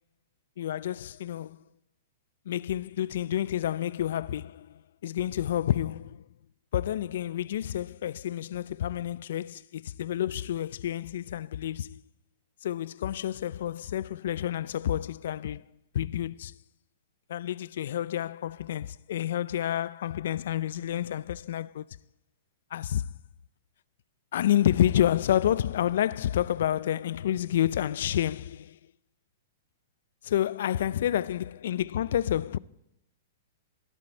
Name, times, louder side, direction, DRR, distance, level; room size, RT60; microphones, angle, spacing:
voice 1, 0.6-1.6 2.5-6.2 6.7-12.0 12.6-15.6 15.9-16.5 17.3-21.8 22.7-23.1 24.3-28.8 30.2-32.6, left 11 dB, 70° left, 0.4 m, -29 dB
16.5 x 11.5 x 4.5 m
hypercardioid pair, 135°, 0 cm